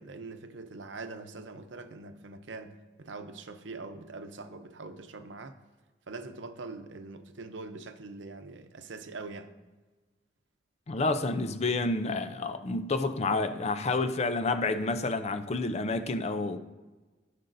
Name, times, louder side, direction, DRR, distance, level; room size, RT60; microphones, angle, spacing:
voice 1, 0.0-5.6 6.1-9.5, right 3 dB, 85° right, 0.7 m, -43 dB
voice 2, 10.9-16.6, left 3 dB, 35° left, 0.5 m, -29 dB
15.5 x 5.3 x 2.6 m
head